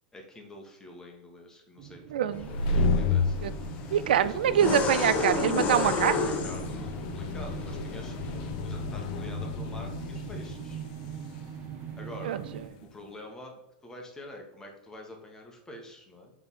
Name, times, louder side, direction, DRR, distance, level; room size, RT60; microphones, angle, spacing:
voice 1, 0.1-2.4 2.9-3.4 4.2-4.6 6.1-8.2 8.6-10.8 12.0-12.4 12.9-16.3, left 1 dB, 10° left, 1 dB, 1.3 m, -45 dB
sound 1, 1.8-12.7, right 9 dB, 35° right, 0.7 m, -42 dB
voice 2, 2.1-2.5 3.4-3.5 3.9-6.1 12.2-12.4, right 9 dB, 85° right, 14 dB, 0.3 m, -24 dB
sound 2, 2.3-12.8, left 3 dB, 60° left, 0.6 m, -33 dB
sound 3, 2.3-8.5, left 4 dB, 30° left, 0.9 m, -33 dB
6.9 x 3.5 x 4.2 m, 0.86 s
supercardioid pair, 130°, 5 cm